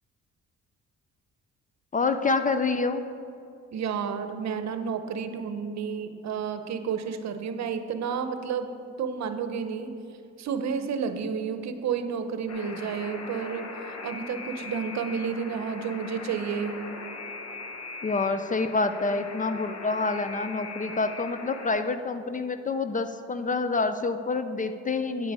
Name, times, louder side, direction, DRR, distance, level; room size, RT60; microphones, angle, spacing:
voice 1, 1.9-3.0 18.0-25.3, left 3 dB, 25° left, 9 dB, 0.4 m, -27 dB
voice 2, 3.7-10.0 10.4-13.7 14.0-16.8, right 6 dB, 65° right, 9 dB, 0.8 m, -31 dB
Alarm, 12.5-21.7, left 3 dB, 55° left, 1.2 m, -40 dB
9.6 x 7.9 x 4.8 m, 2.6 s
cardioid pair, 90°, 30 cm